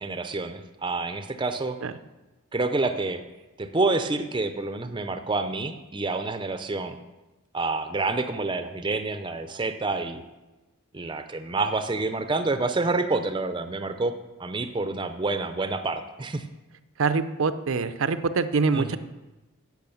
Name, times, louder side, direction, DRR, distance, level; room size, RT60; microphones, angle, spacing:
voice 1, 0.0-1.8 2.5-3.2 3.6-7.0 7.5-10.2 10.9-16.4 18.7-19.0, right 3 dB, 20° right, 9 dB, 0.5 m, -28 dB
voice 2, 17.0-19.0, right 4 dB, 70° right, 12 dB, 0.5 m, -24 dB
10.5 x 6.4 x 7.0 m, 1.1 s
head